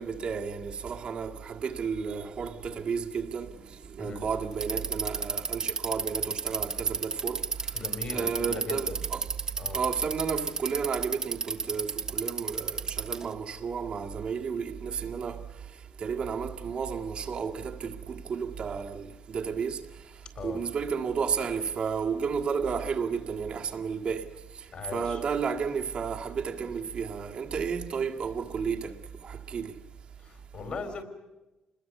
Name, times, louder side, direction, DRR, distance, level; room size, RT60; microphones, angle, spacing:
voice 1, 0.0-3.5 4.0-7.4 8.1-9.2 9.7-15.4 16.0-19.8 20.4-24.3 24.9-29.0 29.2-29.7, right 6 dB, 50° right, 1.9 m, -32 dB
Bicycle, 4.5-13.3, right 5 dB, 30° right, 1.4 m, -31 dB
voice 2, 7.7-9.0 9.6-9.8 20.3-20.6 24.7-25.2 30.2-31.0, left 3 dB, 50° left, 4.3 m, -38 dB
28.0 x 21.0 x 8.2 m
cardioid pair, 135°, 2 cm